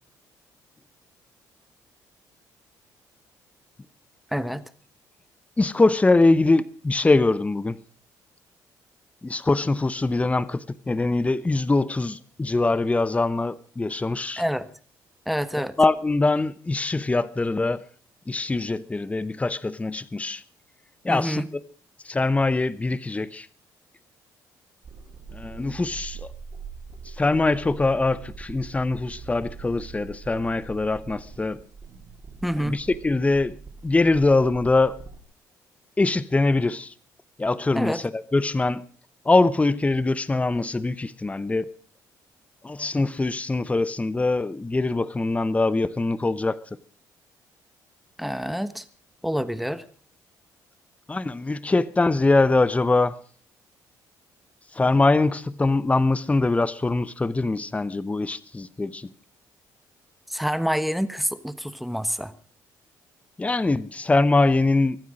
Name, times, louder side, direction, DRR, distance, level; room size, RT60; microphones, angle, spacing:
voice 1, 4.3-4.6 14.4-14.7 15.3-15.8 21.1-21.5 32.4-32.8 37.7-38.0 48.2-48.8 49.2-49.9 60.3-62.3, equal, ahead, 1.3 m, -27 dB
voice 2, 5.6-7.8 9.2-14.4 15.8-17.8 18.3-20.4 21.0-21.6 22.0-23.5 25.3-26.3 27.0-31.6 32.6-33.6 33.8-35.0 36.0-36.9 37.4-38.9 39.2-41.7 42.6-46.6 51.1-53.2 54.7-59.1 63.4-65.0, left 3 dB, 15° left, 0.9 m, -23 dB
sound 1, 24.8-35.2, right 5 dB, 50° right, 3.9 m, -42 dB
23.5 x 9.4 x 6.3 m
supercardioid pair, 75°, 8 cm